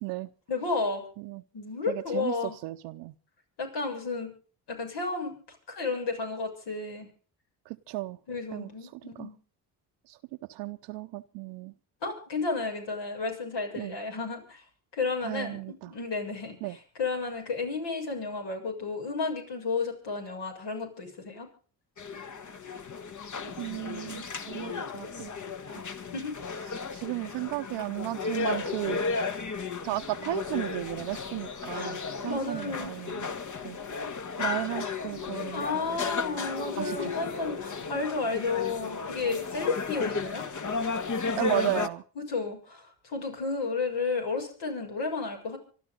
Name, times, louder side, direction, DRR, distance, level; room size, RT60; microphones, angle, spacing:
voice 1, 0.5-1.0 1.5-2.6 3.6-4.3 4.7-5.4 5.7-7.1 8.3-9.4 12.0-14.6 14.9-21.5 26.1-26.4 31.7-31.9 32.3-33.0 35.5-40.4 42.2-45.6, left 4 dB, 75° left, 3 dB, 7.2 m, -32 dB
voice 2, 1.9-2.3 2.6-3.1 7.7-8.2 8.5-9.3 10.1-10.2 10.5-11.7 13.8-14.0 15.2-15.9 16.6-16.8 23.6-25.3 25.7-25.8 26.9-29.0 29.8-33.3 33.6-33.8 34.4-36.0 36.8-37.1 41.4-42.0, right 18 dB, 85° right, 5 dB, 0.8 m, -34 dB
sound 1, 22.0-41.9, left 4 dB, 45° left, 1.6 m, -34 dB
25.5 x 12.5 x 3.9 m, 0.40 s
supercardioid pair, 60°, 42 cm